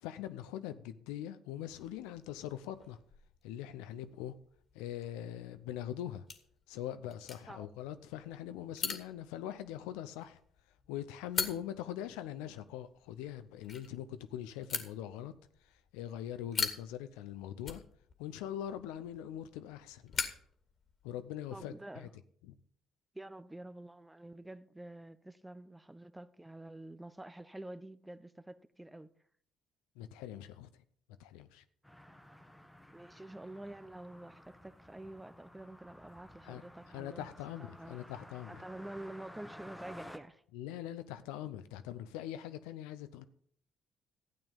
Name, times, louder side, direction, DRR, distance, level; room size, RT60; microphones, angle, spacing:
voice 1, 0.0-3.0 3.4-4.3 4.7-6.3 6.7-10.4 10.9-15.3 15.9-17.8 18.2-20.1 21.0-22.1 22.4-22.6 30.0-30.7 31.2-31.6 36.4-36.6 36.9-38.6 40.5-43.3, left 11 dB, 75° left, 0.7 m, -42 dB
sound 1, 1.7-21.3, left 5 dB, 45° left, 1.9 m, -44 dB
voice 2, 21.5-22.1 23.1-29.1 32.9-37.3 37.6-38.0 38.5-40.4, right 1 dB, 10° right, 0.8 m, -48 dB
sound 2, 31.8-40.2, left 1 dB, 5° left, 1.3 m, -54 dB
13.0 x 8.8 x 5.4 m
hypercardioid pair, 55°, 0 cm